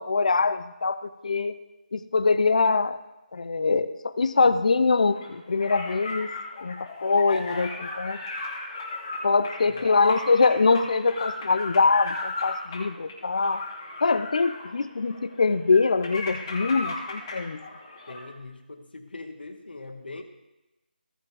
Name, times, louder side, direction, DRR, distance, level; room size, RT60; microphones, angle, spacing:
voice 1, 0.0-1.5 1.9-3.0 3.3-6.3 6.6-8.2 9.2-13.7 14.0-17.6, left 4 dB, 45° left, 13 dB, 0.6 m, -23 dB
sound 1, 5.1-18.3, left 2 dB, 20° left, 1.6 m, -36 dB
voice 2, 9.6-9.9 18.1-20.2, left 3 dB, 75° left, 5 dB, 1.6 m, -41 dB
16.0 x 5.8 x 3.4 m, 1.0 s
figure-of-eight pair, 175°, 5 cm